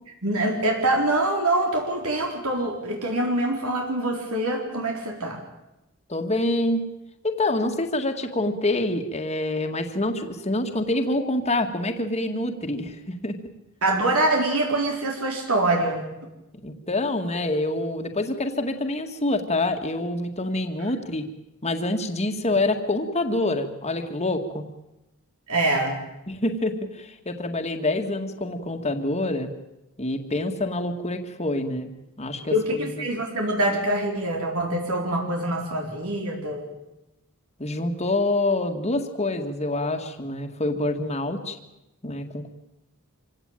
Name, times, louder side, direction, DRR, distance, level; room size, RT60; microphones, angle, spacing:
voice 1, 0.2-5.4 13.8-16.0 25.5-26.0 32.5-36.7, right 1 dB, 70° right, 1 dB, 4.1 m, -24 dB
voice 2, 6.1-6.8 7.2-13.4 16.6-21.3 21.6-24.6 26.3-29.5 30.0-31.9 32.2-32.5 33.0-33.1 37.6-41.6 42.0-42.5, left 2 dB, 30° left, 4 dB, 2.0 m, -26 dB
26.0 x 16.5 x 9.0 m, 0.94 s
head